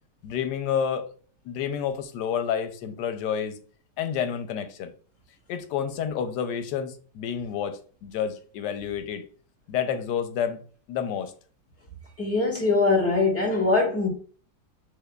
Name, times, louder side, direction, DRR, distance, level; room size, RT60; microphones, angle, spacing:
voice 1, 0.2-1.1 1.4-3.6 4.0-4.9 5.5-9.3 9.7-10.6 10.9-11.3, left 8 dB, 90° left, 1.2 m, -29 dB
voice 2, 12.2-14.1, left 3 dB, 10° left, 1.3 m, -22 dB
5.7 x 3.0 x 2.3 m
omnidirectional pair, 1.8 m